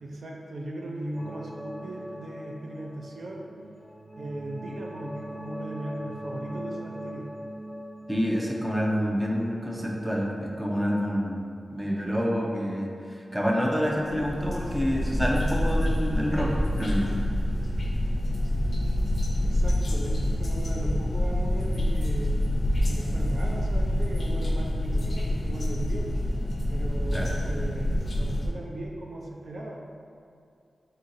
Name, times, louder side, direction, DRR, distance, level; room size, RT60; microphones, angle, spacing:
voice 1, 0.0-3.5 4.2-7.3 19.4-22.3 22.9-26.1 26.7-29.8, right 1 dB, 60° right, -1 dB, 0.4 m, -37 dB
sound 1, 1.1-9.8, equal, 10° left, 1.3 m, -41 dB
voice 2, 8.1-11.4 11.7-17.1 27.1-27.3, equal, 5° right, -2 dB, 0.5 m, -27 dB
sound 2, 13.9-28.5, left 1 dB, 45° left, 0.5 m, -27 dB
4.2 x 3.8 x 2.6 m, 2.4 s
wide cardioid pair, 140°, 0 cm